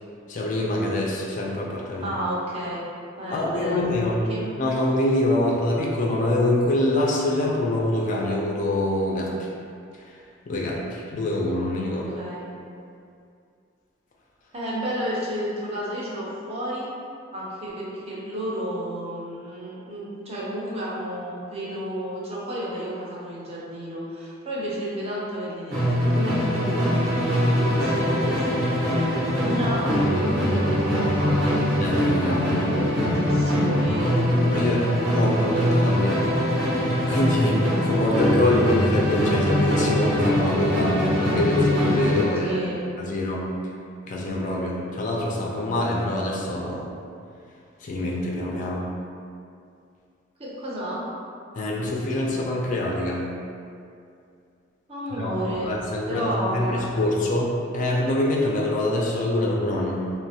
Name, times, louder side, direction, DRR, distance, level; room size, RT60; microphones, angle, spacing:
voice 1, 0.3-2.1 3.3-4.2 4.6-9.3 10.5-12.1 31.8-33.0 33.9-34.1 34.4-36.2 37.1-42.6 43.0-43.4 44.0-46.9 47.8-48.9 51.6-53.2 55.1-60.0, left 1 dB, 40° left, -3 dB, 0.3 m, -25 dB
voice 2, 2.0-2.9 3.2-4.5 11.8-12.5 14.5-16.9 17.3-31.6 32.2-35.9 42.4-42.9 50.4-51.0 54.9-55.7 56.1-57.0, equal, 30° right, -6 dB, 0.5 m, -31 dB
Musical instrument, 25.7-42.4, equal, 70° right, 0.8 m, -23 dB
2.9 x 2.1 x 2.7 m, 2.4 s
head